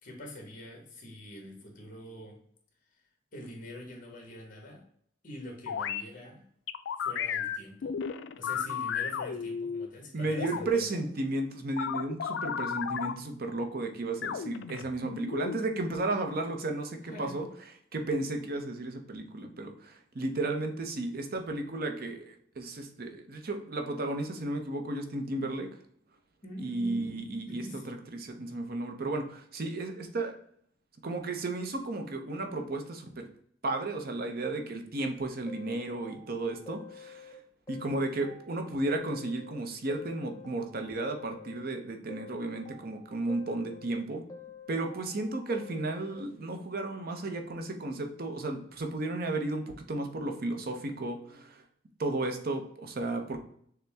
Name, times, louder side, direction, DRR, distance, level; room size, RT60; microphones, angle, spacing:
voice 1, 0.0-2.4 3.3-4.8 5.2-6.4 7.0-8.0 8.4-11.0 17.1-17.4 26.4-28.0, left 1 dB, 45° left, 1 dB, 1.4 m, -45 dB
sound 1, 5.7-6.0 6.7-9.9 10.4-10.8 11.8-13.1 14.2-15.6, left 7 dB, 80° left, 0.3 m, -34 dB
voice 2, 10.1-17.5 17.9-25.7 26.6-30.3 31.0-33.3 33.6-37.4 37.7-44.2 44.7-51.6 52.0-53.4, right 2 dB, 55° right, 5 dB, 0.7 m, -34 dB
sound 2, 35.5-37.3 37.7-39.6 39.9-41.8 42.1-44.0 44.3-46.2, left 4 dB, 20° left, 0.7 m, -49 dB
6.6 x 2.2 x 3.4 m, 0.65 s
head